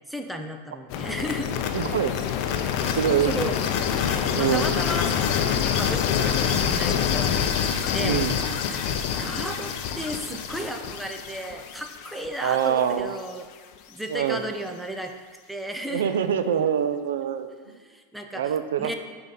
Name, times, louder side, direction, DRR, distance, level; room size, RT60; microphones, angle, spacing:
voice 1, 0.1-1.6 2.8-3.0 3.3-3.6 4.0-8.2 8.7-13.5 13.9-15.1 15.5-16.2 17.8-18.9, right 1 dB, 5° right, 4 dB, 0.5 m, -34 dB
sound 1, 0.9-12.8, left 8 dB, 55° left, 0.5 m, -26 dB
voice 2, 1.7-2.1 3.0-3.5 4.3-4.7 8.0-8.3 12.4-13.2 14.1-14.4 15.9-17.5 18.3-18.9, right 9 dB, 85° right, 10 dB, 0.4 m, -24 dB
6.4 x 3.7 x 5.4 m, 1.5 s
supercardioid pair, 130°, 0 cm